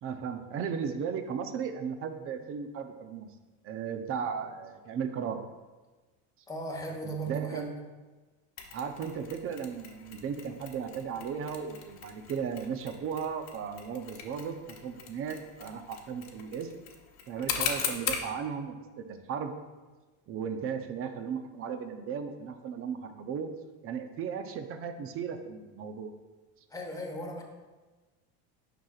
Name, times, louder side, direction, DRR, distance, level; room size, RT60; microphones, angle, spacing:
voice 1, 0.0-3.3 3.6-5.4 7.3-7.7 8.7-16.7 17.3-19.5 20.3-23.5 23.8-26.1, right 7 dB, 40° right, 8 dB, 0.6 m, -36 dB
voice 2, 6.5-7.7 26.7-27.4, right 2 dB, 10° left, 0 dB, 1.1 m, -36 dB
Mechanisms, 8.6-18.3, left 7 dB, 50° left, 1.0 m, -39 dB
9.2 x 5.9 x 2.4 m, 1.3 s
supercardioid pair, 130°, 35 cm